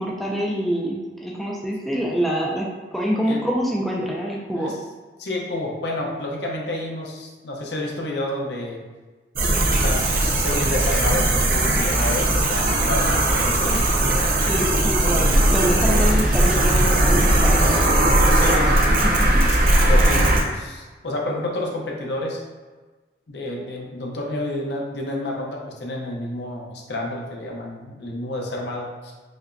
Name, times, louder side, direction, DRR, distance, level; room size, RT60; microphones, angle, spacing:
voice 1, 0.0-4.8 13.7-13.8 14.5-18.2 18.9-19.4, equal, ahead, -3 dB, 0.3 m, -26 dB
voice 2, 5.2-8.8 9.7-14.4 18.3-18.8 19.2-22.4 23.3-29.1, left 1 dB, 75° left, -1 dB, 0.7 m, -30 dB
sound 1, 9.4-20.4, right 1 dB, 50° right, 0.5 m, -18 dB
4.9 x 2.1 x 2.6 m, 1.3 s
head